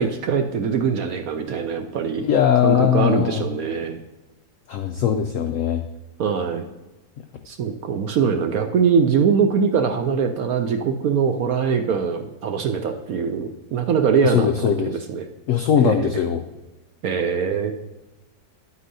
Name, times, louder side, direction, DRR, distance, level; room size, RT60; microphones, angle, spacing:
voice 1, 0.0-2.2 2.6-4.0 6.2-6.6 7.5-15.3 15.8-16.0 17.0-17.7, right 6 dB, 70° right, 6 dB, 0.9 m, -22 dB
voice 2, 2.2-3.4 4.7-5.8 14.2-15.0 15.5-16.4, left 9 dB, 85° left, 6 dB, 0.7 m, -20 dB
9.5 x 8.2 x 2.7 m, 1.1 s
omnidirectional pair, 1.9 m